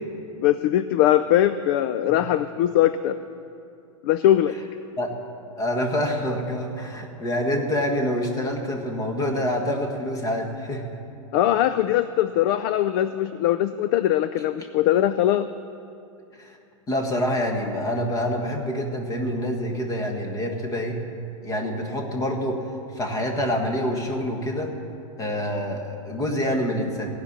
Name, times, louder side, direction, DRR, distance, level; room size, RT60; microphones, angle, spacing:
voice 1, 0.4-3.2 4.0-4.5 11.3-15.5, left 12 dB, 45° left, 12 dB, 0.4 m, -21 dB
voice 2, 5.6-10.8 16.4-16.6 16.9-21.0 21.4-22.6 22.9-24.7 25.2-27.1, equal, 20° left, 2 dB, 1.7 m, -26 dB
17.0 x 5.9 x 9.6 m, 2.6 s
supercardioid pair, 145°, 17 cm